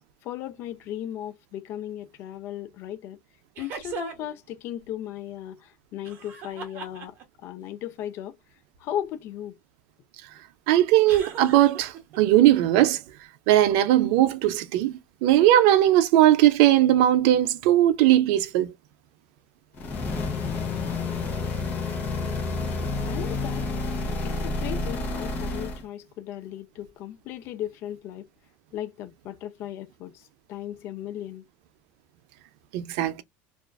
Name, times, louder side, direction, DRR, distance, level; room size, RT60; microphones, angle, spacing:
voice 1, 0.2-3.2 3.6-5.6 5.9-7.1 7.4-8.3 8.8-9.5 23.1-23.6 24.2-28.3 28.7-30.1 30.5-31.4, left 11 dB, 45° left, 0.4 m, -36 dB
sound 1, 3.6-4.4 6.0-7.5 11.1-12.2, right 6 dB, 40° right, 0.8 m, -39 dB
voice 2, 10.7-13.0 13.5-14.9 15.2-18.7 32.7-33.2, right 13 dB, 70° right, 0.4 m, -19 dB
sound 2, 19.7-25.8, left 3 dB, 30° left, 0.7 m, -29 dB
2.4 x 2.3 x 2.2 m
cardioid pair, 160°, 5 cm